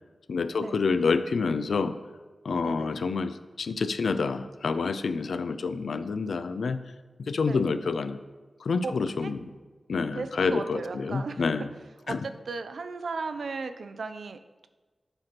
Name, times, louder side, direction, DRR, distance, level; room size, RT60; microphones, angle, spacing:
voice 1, 0.3-2.0 2.4-6.8 7.2-8.2 8.6-9.5 9.9-11.7 12.1-12.2, left 4 dB, 90° left, 11 dB, 0.3 m, -28 dB
voice 2, 2.6-3.0 7.5-7.6 8.8-8.9 9.2-9.3 10.1-11.4 12.1-14.7, right 4 dB, 85° right, 10 dB, 0.4 m, -36 dB
7.8 x 2.9 x 5.8 m, 1.3 s
wide cardioid pair, 75°, 0 cm